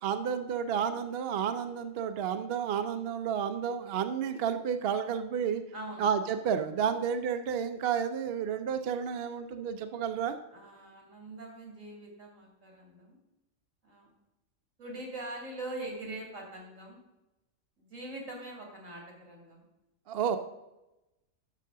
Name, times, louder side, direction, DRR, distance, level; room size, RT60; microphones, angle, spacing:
voice 1, 0.0-5.6 6.0-10.3 20.1-20.4, right 7 dB, 60° right, 8 dB, 0.7 m, -31 dB
voice 2, 5.7-6.0 10.5-13.2 13.8-14.1 14.8-17.0 17.8-19.6, right 2 dB, 80° right, 0 dB, 2.9 m, -43 dB
10.5 x 6.6 x 3.7 m, 0.96 s
omnidirectional pair, 1.3 m